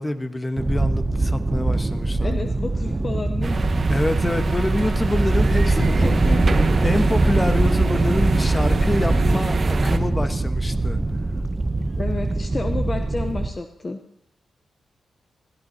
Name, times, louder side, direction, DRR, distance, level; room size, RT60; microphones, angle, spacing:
voice 1, 0.0-2.4 3.9-6.1 6.8-11.0, left 1 dB, 20° left, 8 dB, 1.3 m, -26 dB
sound 1, 0.6-13.5, right 2 dB, 25° right, 0.7 m, -22 dB
voice 2, 2.2-3.7 5.7-7.1 12.0-14.0, left 3 dB, 35° left, 6 dB, 0.9 m, -31 dB
sound 2, 3.4-10.0, right 4 dB, 50° right, 1.0 m, -26 dB
19.5 x 14.0 x 2.9 m, 0.70 s
cardioid pair, 65°, 0 cm